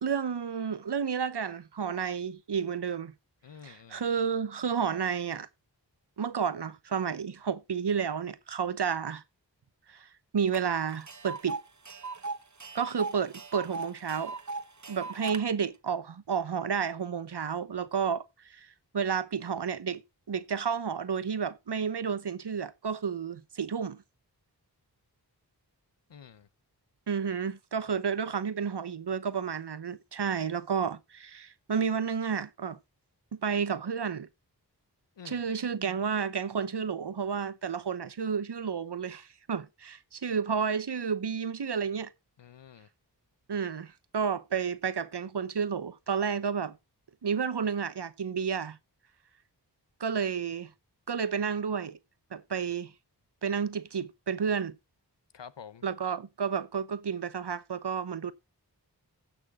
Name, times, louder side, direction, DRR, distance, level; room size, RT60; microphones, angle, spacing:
voice 1, 0.0-3.1 3.6-5.5 6.2-9.2 9.9-10.1 10.3-11.6 12.7-14.4 14.9-18.7 18.9-20.0 20.3-24.0 27.1-32.8 33.3-34.3 35.2-42.1 43.5-46.8 47.2-48.8 50.0-50.7 51.1-52.0 52.3-52.9 53.4-54.8 55.8-58.3, right 6 dB, 70° right, 0.9 m, -31 dB
voice 2, 3.4-4.0 26.1-26.5 35.2-35.4 42.4-42.9 55.3-55.8, left 7 dB, 90° left, 0.8 m, -48 dB
Tick, 10.5-10.6 10.9-15.4, right 3 dB, 45° right, 1.0 m, -38 dB
16.0 x 5.9 x 3.6 m
wide cardioid pair, 40°, 42 cm